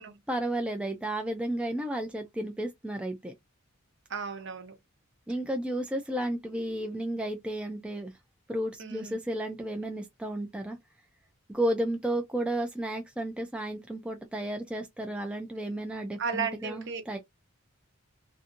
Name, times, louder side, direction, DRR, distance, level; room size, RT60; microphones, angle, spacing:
voice 1, 0.3-3.3 5.3-8.1 8.5-10.8 11.5-17.2, right 1 dB, 5° right, 0.3 m, -32 dB
voice 2, 4.1-4.7 8.8-9.2 16.2-17.0, right 5 dB, 60° right, 0.8 m, -34 dB
2.5 x 2.5 x 2.6 m
head